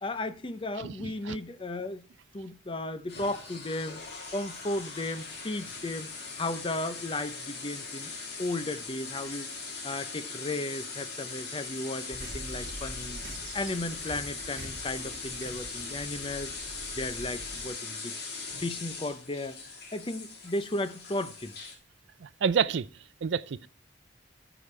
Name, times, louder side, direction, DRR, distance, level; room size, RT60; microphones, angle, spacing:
voice 1, 0.0-2.0 2.3-4.0 4.3-8.1 8.4-9.5 9.8-13.2 13.5-18.1 18.6-19.6 19.9-21.5, left 2 dB, 25° left, 0.6 m, -35 dB
sound 1, 3.1-21.7, left 4 dB, 55° left, 2.6 m, -40 dB
sound 2, 12.1-17.7, right 1 dB, 50° right, 1.8 m, -45 dB
voice 2, 22.4-22.8 23.2-23.7, right 7 dB, 70° right, 0.4 m, -27 dB
14.5 x 5.0 x 3.2 m
head